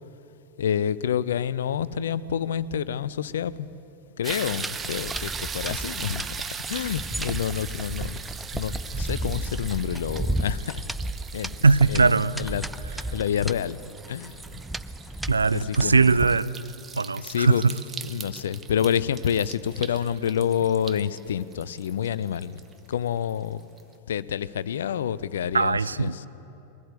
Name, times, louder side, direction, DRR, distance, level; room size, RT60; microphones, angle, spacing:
voice 1, 0.6-3.7 4.2-6.3 6.7-8.2 8.5-10.8 11.3-11.6 11.9-12.1 12.4-12.7 13.1-13.8 14.1-14.4 15.5-16.0 17.2-17.6 18.0-22.6 22.9-23.6 24.1-26.3, left 9 dB, 60° left, 0.5 m, -28 dB
sound 1, 4.2-23.3 23.8-23.9, right 6 dB, 20° right, 0.9 m, -39 dB
sound 2, 4.3-16.4, right 1 dB, 5° right, 0.4 m, -34 dB
voice 2, 11.6-12.4 15.3-16.6 17.0-17.7 25.5-26.2, right 4 dB, 80° right, 0.5 m, -20 dB
21.5 x 15.5 x 7.8 m
figure-of-eight pair, 90°, 0 cm